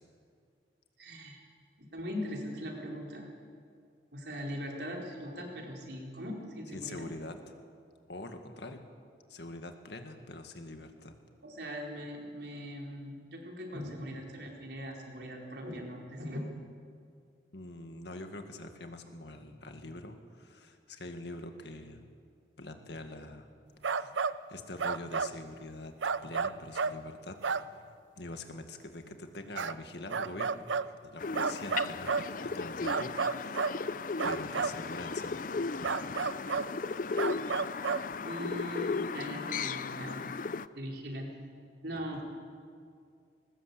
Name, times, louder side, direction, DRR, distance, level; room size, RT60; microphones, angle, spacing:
voice 1, 1.0-1.4 1.9-3.3 4.1-7.1 11.4-16.5 38.2-40.2 40.7-41.3 41.8-42.2, equal, 65° right, 0 dB, 4.4 m, -40 dB
voice 2, 6.7-7.3 8.1-8.8 9.3-11.2 17.5-22.0 22.6-23.5 23.9-24.1 24.5-25.9 26.2-27.6 28.2-35.9 41.9-42.2, left 2 dB, 65° left, 6 dB, 2.0 m, -44 dB
sound 1, 23.8-24.4 24.8-25.3 26.0-27.0 27.4-27.7 29.6-29.7 30.1-30.9 31.3-32.3 32.8-33.8 34.2-34.8 35.8-36.7 37.2-38.1, right 5 dB, 85° right, 0.6 m, -31 dB
sound 2, 31.2-40.7, left 4 dB, 45° left, 0.5 m, -36 dB
21.0 x 19.5 x 8.4 m, 2.3 s
head